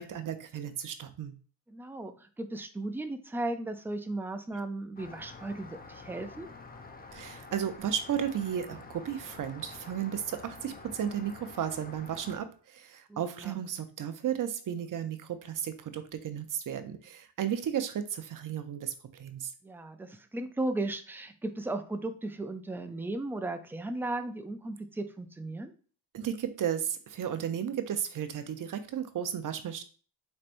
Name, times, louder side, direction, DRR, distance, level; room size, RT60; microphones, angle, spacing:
voice 1, 0.0-1.3 7.1-19.5 26.1-29.8, right 9 dB, 45° right, 9 dB, 0.7 m, -34 dB
voice 2, 1.7-6.5 13.1-13.6 19.6-25.7, right 2 dB, 5° right, 7 dB, 0.3 m, -36 dB
Rain, 5.0-12.4, left 3 dB, 20° left, 0.7 m, -48 dB
4.4 x 3.2 x 2.6 m, 0.40 s
cardioid pair, 85°, 46 cm